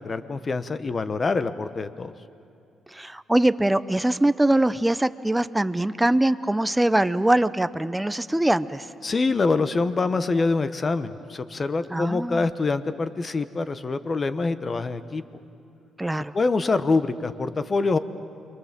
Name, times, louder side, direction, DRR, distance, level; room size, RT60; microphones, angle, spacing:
voice 1, 0.0-2.1 9.0-15.2 16.3-18.0, left 3 dB, 35° left, 12 dB, 1.0 m, -25 dB
voice 2, 2.9-8.8 11.9-12.5 16.0-16.3, right 1 dB, 10° right, 13 dB, 0.7 m, -22 dB
29.0 x 22.5 x 7.5 m, 2.6 s
cardioid pair, 90°, 0 cm